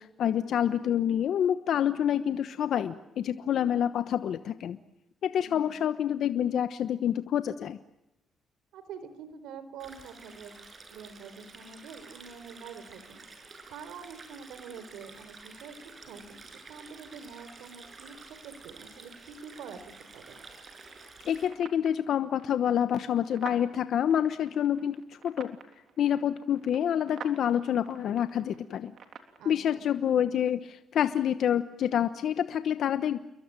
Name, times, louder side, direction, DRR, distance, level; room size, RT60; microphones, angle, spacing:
voice 1, 0.0-4.8 5.2-7.8 21.3-25.6 26.0-28.9 29.4-33.2, left 9 dB, 70° left, 11 dB, 1.1 m, -27 dB
voice 2, 5.4-5.8 8.7-10.6 10.9-13.2 13.7-20.4 29.4-29.8, right 6 dB, 85° right, 12 dB, 4.3 m, -46 dB
Stream, 9.8-21.5, right 3 dB, 40° right, 7.0 m, -50 dB
sound 1, 20.3-29.4, right 7 dB, 65° right, 3.4 m, -50 dB
29.5 x 22.5 x 9.0 m, 0.87 s
cardioid pair, 90°, 0 cm